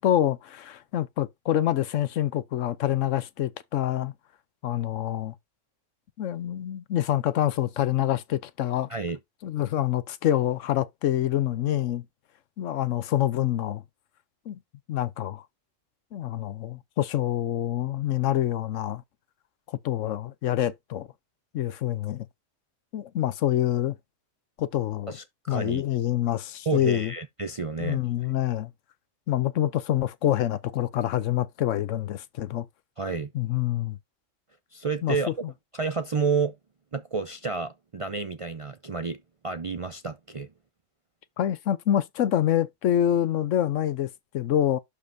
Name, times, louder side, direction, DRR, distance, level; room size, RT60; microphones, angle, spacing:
voice 1, 0.0-4.1 4.6-5.3 6.2-8.9 9.4-12.0 12.6-13.8 14.5-14.6 14.9-15.4 16.1-19.0 19.8-21.1 21.5-22.3 22.9-24.0 24.6-25.1 25.5-27.1 27.8-28.7 29.3-32.7 33.3-34.0 35.0-35.3 41.4-44.1 44.3-44.8, left 12 dB, 75° left, 1.0 m, -26 dB
voice 2, 25.1-25.8 26.7-28.1 33.0-33.3 34.7-35.3 35.7-36.6 36.9-40.5, right 4 dB, 40° right, 0.4 m, -30 dB
11.5 x 5.2 x 2.6 m
omnidirectional pair, 1.3 m